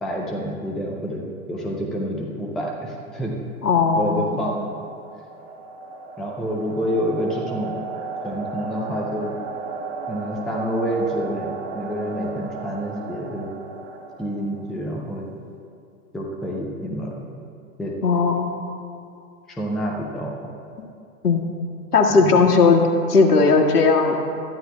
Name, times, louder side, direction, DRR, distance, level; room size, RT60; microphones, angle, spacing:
voice 1, 0.0-3.3 4.0-4.8 6.2-7.8 8.2-9.3 10.1-13.5 14.2-15.3 16.1-17.2 17.8-17.9 19.5-20.5 22.1-22.3, equal, ahead, -1 dB, 0.4 m, -28 dB
voice 2, 3.6-4.2 18.0-18.5 21.2-21.5 21.9-22.8 23.1-24.2, left 4 dB, 80° left, 1 dB, 1.9 m, -17 dB
sound 1, 4.0-14.9, right 4 dB, 40° right, 1.9 m, -35 dB
21.0 x 13.5 x 2.3 m, 2.5 s
figure-of-eight pair, 110°, 46 cm